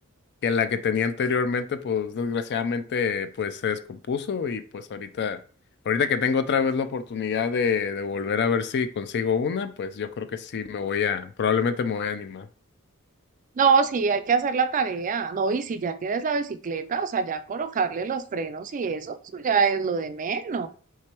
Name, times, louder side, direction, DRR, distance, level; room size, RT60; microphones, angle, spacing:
voice 1, 0.4-5.4 5.9-12.5, left 6 dB, 50° left, 0.4 m, -26 dB
voice 2, 13.6-20.7, right 5 dB, 35° right, 0.4 m, -25 dB
3.4 x 3.2 x 4.3 m
head